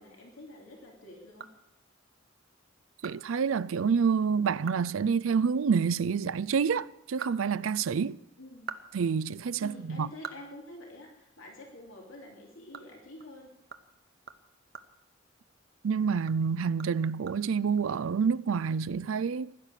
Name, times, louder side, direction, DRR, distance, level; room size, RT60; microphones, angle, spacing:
voice 1, 0.0-1.5 8.4-8.7 9.6-13.5, left 1 dB, 80° left, 3.1 m, -47 dB
sound 1, 1.4-2.1 2.5-2.6 3.0-3.2 3.5-3.6 4.0-4.1 4.5-4.9 5.2-5.3 6.8-8.1 8.5-11.4 11.7-11.8 12.2-15.8 16.2-17.8, right 6 dB, 50° right, 0.8 m, -46 dB
voice 2, 3.0-8.2 8.9-10.1 15.8-19.5, right 6 dB, 80° right, 0.4 m, -28 dB
16.0 x 10.5 x 6.6 m
head